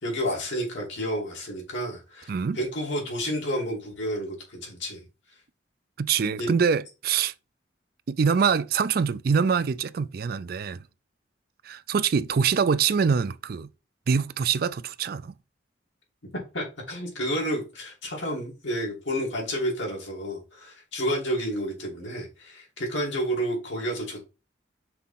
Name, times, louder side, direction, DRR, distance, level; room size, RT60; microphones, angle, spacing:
voice 1, 0.0-5.0 6.4-6.5 16.5-24.2, equal, 85° left, 3.1 m, -30 dB
voice 2, 6.0-7.3 8.1-10.8 11.6-13.7 14.1-15.3, right 6 dB, 55° right, 0.4 m, -24 dB
5.8 x 3.6 x 5.7 m
head